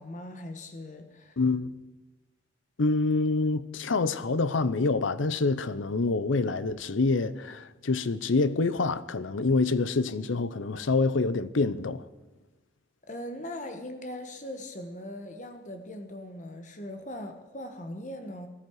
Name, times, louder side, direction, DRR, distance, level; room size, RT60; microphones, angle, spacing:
voice 1, 0.0-1.4 13.0-18.5, left 1 dB, 40° left, 1.4 m, -40 dB
voice 2, 1.4-1.7 2.8-12.1, left 3 dB, 90° left, 0.7 m, -26 dB
18.5 x 13.5 x 4.8 m
head